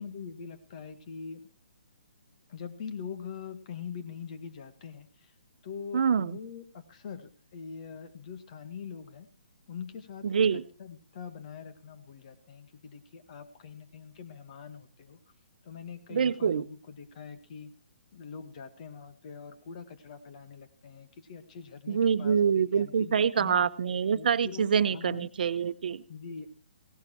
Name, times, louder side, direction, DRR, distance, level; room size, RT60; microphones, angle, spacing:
voice 1, 0.0-1.4 2.5-5.3 5.6-9.3 9.7-15.2 15.6-17.7 18.1-23.6 24.1-25.3 26.1-26.5, left 6 dB, 40° left, 9 dB, 2.0 m, -43 dB
voice 2, 5.9-6.4 10.2-10.6 16.1-16.6 21.9-26.0, right 7 dB, 60° right, 13 dB, 1.0 m, -26 dB
17.5 x 11.5 x 4.6 m, 0.36 s
hypercardioid pair, 155°, 5 cm